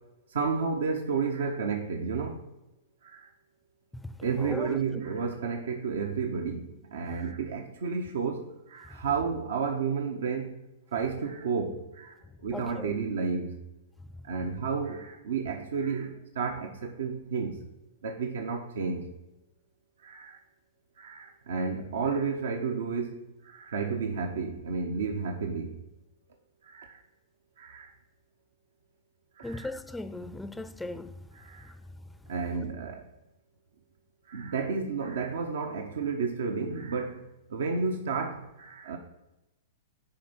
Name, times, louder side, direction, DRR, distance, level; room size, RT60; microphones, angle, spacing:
voice 1, 0.3-2.4 3.0-3.3 4.2-10.6 10.9-13.6 14.2-17.7 18.0-19.2 20.0-20.4 21.0-25.8 26.6-27.0 27.6-27.9 29.4-29.7 31.3-31.7 32.3-33.1 34.3-39.0, right 5 dB, 75° right, 0.8 m, -32 dB
voice 2, 3.9-4.8 12.5-12.9 29.4-31.1 31.6-31.7, left 2 dB, 5° left, 0.4 m, -38 dB
9.7 x 3.5 x 5.3 m
hypercardioid pair, 125°, 0 cm